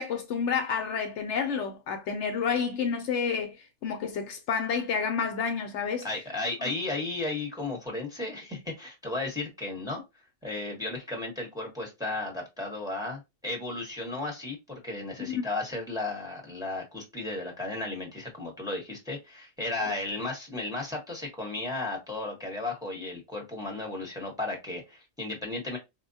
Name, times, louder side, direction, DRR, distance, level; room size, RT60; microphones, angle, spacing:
voice 1, 0.0-3.6 3.8-6.1 15.2-15.4 19.8-19.9, left 6 dB, 70° left, 0.8 m, -29 dB
voice 2, 6.0-10.0 10.4-25.8, left 2 dB, 5° right, 0.9 m, -34 dB
4.4 x 2.2 x 2.7 m
omnidirectional pair, 1.3 m